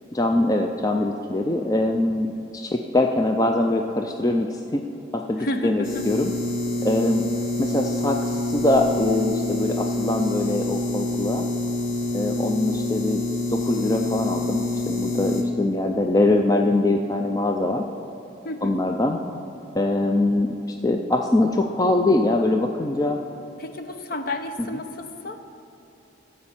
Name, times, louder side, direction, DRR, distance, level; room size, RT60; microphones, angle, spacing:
voice 1, 0.1-2.3 2.5-4.8 5.1-6.3 6.8-7.3 7.6-11.4 12.1-13.2 13.5-17.8 18.6-19.2 19.7-20.5 20.8-23.2, left 2 dB, 20° left, 3 dB, 0.4 m, -23 dB
voice 2, 5.4-6.1 18.4-18.8 23.6-25.4, left 1 dB, 50° left, 7 dB, 0.7 m, -31 dB
sound 1, 5.8-15.4, left 2 dB, 80° left, 1.7 m, -27 dB
14.0 x 5.2 x 7.2 m, 2.9 s
head